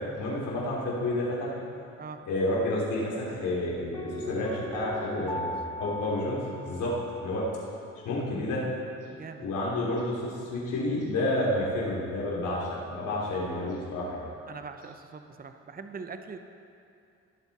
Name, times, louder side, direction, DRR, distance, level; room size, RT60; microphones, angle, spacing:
voice 1, 0.0-1.6 2.3-6.9 7.2-7.5 8.0-8.6 9.4-14.3, left 1 dB, 85° left, -5 dB, 3.2 m, -30 dB
Piano, 3.9-7.7 8.0-8.1, left 1 dB, 15° left, 1.0 m, -38 dB
voice 2, 5.1-5.5 6.8-7.0 9.1-9.5 14.5-16.4, right 5 dB, 30° right, 7 dB, 0.8 m, -42 dB
18.0 x 8.0 x 4.2 m, 2.5 s
cardioid pair, 90°, 30 cm